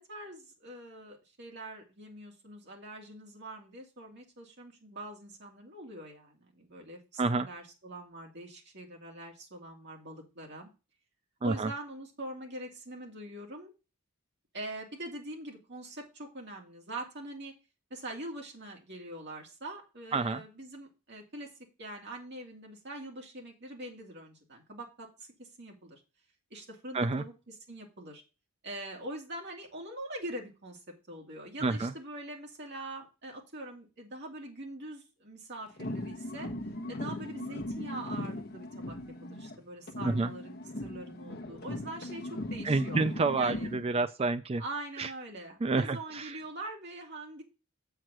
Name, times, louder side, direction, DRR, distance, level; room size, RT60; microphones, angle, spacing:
voice 1, 0.0-10.7 11.4-13.7 14.5-17.5 17.9-21.5 21.8-26.0 26.5-27.3 27.7-28.2 28.6-30.8 31.1-36.5 36.9-40.5 40.8-43.0 43.4-43.7 44.6-47.4, right 1 dB, 50° right, 0 dB, 2.6 m, -43 dB
voice 2, 7.2-7.5 11.4-11.7 20.1-20.4 26.9-27.2 31.6-31.9 40.0-40.3 42.6-44.6 45.0-45.1 45.6-46.4, right 3 dB, 25° right, 12 dB, 0.3 m, -29 dB
sound 1, 35.7-39.6 39.9-43.9, left 1 dB, 45° left, 1.0 m, -38 dB
7.6 x 4.7 x 6.1 m, 0.30 s
head